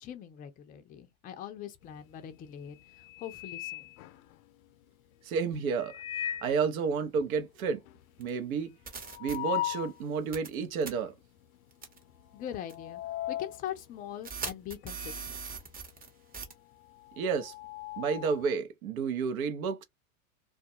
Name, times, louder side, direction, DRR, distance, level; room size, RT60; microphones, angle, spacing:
voice 1, 0.0-2.8 3.2-3.9 12.3-13.0 13.3-15.4, left 10 dB, 20° left, 0.4 m, -42 dB
sound 1, 1.9-2.3 2.7-4.7 5.7-6.7 7.1-7.2 7.4-7.5 7.9-10.0 10.5-10.6 11.4-11.7 12.0-15.3 15.5-18.5, left 13 dB, 75° left, 0.5 m, -39 dB
voice 2, 5.2-5.9 6.4-7.8 8.2-8.8 9.2-11.1 17.2-17.5 18.0-19.8, right 5 dB, 75° right, 0.8 m, -31 dB
sound 2, 8.2-8.3 8.9-9.4 10.3-10.5 10.8-10.9 11.8-12.0 12.7-12.8 14.2-16.1 16.3-16.5, right 5 dB, 20° right, 0.9 m, -39 dB
2.3 x 2.2 x 2.7 m
hypercardioid pair, 100°, 43 cm